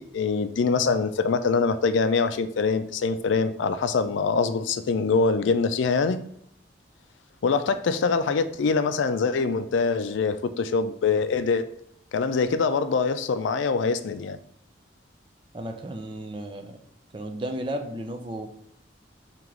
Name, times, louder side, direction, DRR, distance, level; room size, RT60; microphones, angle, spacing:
voice 1, 0.0-6.2 7.4-11.7 12.1-14.4, left 4 dB, 80° left, 11 dB, 0.4 m, -24 dB
voice 2, 15.5-16.8 17.1-18.5, right 1 dB, 25° right, 4 dB, 0.5 m, -34 dB
4.7 x 3.0 x 3.7 m, 0.70 s
head